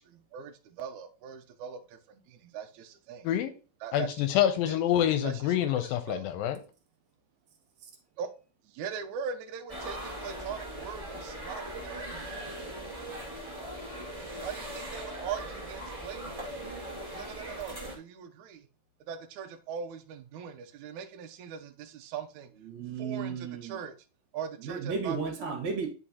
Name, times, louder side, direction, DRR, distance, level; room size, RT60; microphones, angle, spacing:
voice 1, 0.0-1.8 2.1-3.3 3.8-4.1 5.2-5.3 5.8-6.2 8.2-8.3 8.8-12.9 14.4-16.4 17.1-18.6 19.1-22.5 23.0-23.9 24.3-25.2, right 7 dB, 75° right, 1.8 m, -40 dB
voice 2, 3.9-6.6, left 11 dB, 85° left, 2.3 m, -27 dB
sound 1, 9.7-17.9, right 1 dB, 15° right, 1.2 m, -40 dB
voice 3, 22.6-23.8 24.6-25.9, right 5 dB, 55° right, 2.6 m, -34 dB
9.9 x 5.3 x 2.8 m
omnidirectional pair, 4.2 m